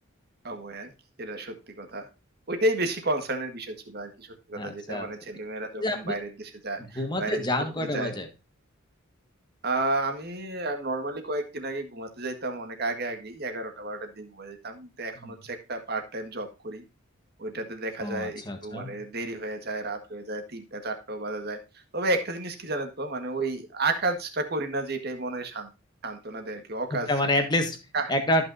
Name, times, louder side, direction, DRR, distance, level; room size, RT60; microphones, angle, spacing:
voice 1, 0.4-0.9 1.2-2.1 2.5-7.5 7.8-8.1 9.6-16.8 17.4-21.6 21.9-25.7 26.0-27.1 27.3-27.4 27.9-28.1, right 2 dB, 50° right, 6 dB, 1.7 m, -32 dB
voice 2, 4.5-5.1 5.8-6.1 6.9-8.3 18.0-18.9 26.9-27.8 28.1-28.5, left 1 dB, 20° left, 5 dB, 1.6 m, -28 dB
14.0 x 6.0 x 2.7 m, 0.29 s
head